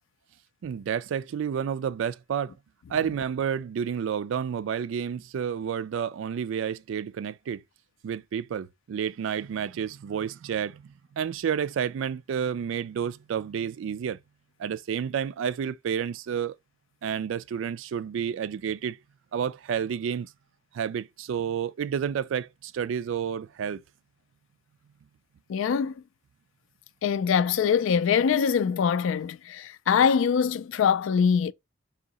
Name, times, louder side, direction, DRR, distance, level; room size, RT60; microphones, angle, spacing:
voice 1, 0.6-2.5 2.9-7.6 8.0-14.2 14.6-16.6 17.0-19.0 19.3-20.3 20.7-23.8, right 8 dB, 75° right, 0.3 m, -30 dB
voice 2, 25.5-26.0 27.0-31.5, left 7 dB, 75° left, 0.3 m, -23 dB
3.8 x 2.7 x 4.0 m
head